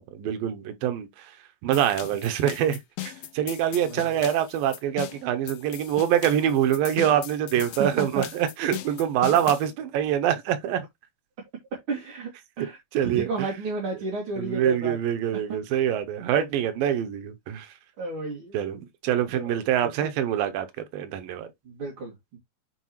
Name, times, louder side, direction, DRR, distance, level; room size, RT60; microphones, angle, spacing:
voice 1, 0.1-1.3 1.6-10.8 12.9-13.3 14.4-17.7 18.5-20.7 20.9-21.5, right 10 dB, 90° right, 2.5 m, -25 dB
sound 1, 1.7-9.7, left 14 dB, 90° left, 2.4 m, -39 dB
voice 2, 7.5-8.3 11.9-12.3 12.6-15.0 15.3-15.6 16.4-16.5 18.0-18.6 19.3-19.6 20.0-20.1 21.6-22.4, right 3 dB, 40° right, 3.0 m, -32 dB
9.7 x 4.6 x 3.0 m
omnidirectional pair, 3.9 m